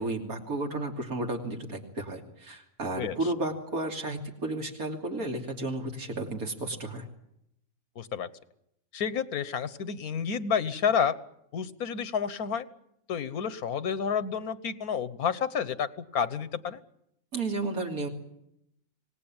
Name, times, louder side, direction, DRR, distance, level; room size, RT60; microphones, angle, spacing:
voice 1, 0.0-7.1 17.3-18.1, right 2 dB, 75° right, 2 dB, 3.4 m, -33 dB
voice 2, 7.9-8.3 8.9-11.1 11.5-12.6 13.1-16.8, left 7 dB, 85° left, 14 dB, 1.6 m, -30 dB
25.5 x 18.5 x 9.0 m, 0.79 s
omnidirectional pair, 1.5 m